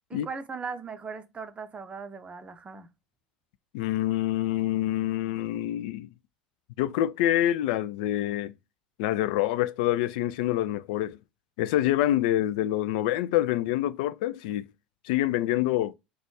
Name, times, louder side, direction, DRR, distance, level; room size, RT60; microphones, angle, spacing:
voice 1, 0.1-2.9, right 5 dB, 25° right, 0.7 m, -38 dB
voice 2, 3.7-6.1 6.8-8.5 9.0-11.2 11.6-14.7 15.0-15.9, left 13 dB, 65° left, 0.4 m, -26 dB
4.0 x 2.4 x 4.7 m
figure-of-eight pair, 75°, 5 cm